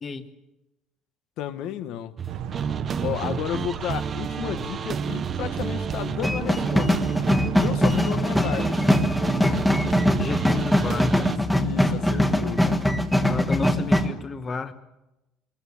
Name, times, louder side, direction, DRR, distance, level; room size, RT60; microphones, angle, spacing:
voice 1, 1.4-2.1 3.0-7.0 7.6-8.8 11.5-12.8, left 11 dB, 60° left, 1.3 m, -32 dB
sound 1, 2.2-11.4, right 6 dB, 25° right, 0.7 m, -30 dB
sound 2, 2.3-7.8, right 10 dB, 60° right, 0.9 m, -37 dB
sound 3, 6.2-14.1, left 1 dB, 5° left, 1.5 m, -22 dB
voice 2, 10.2-11.3 13.3-14.7, left 4 dB, 20° left, 1.1 m, -31 dB
24.5 x 21.0 x 7.2 m
cardioid pair, 170°, 0 cm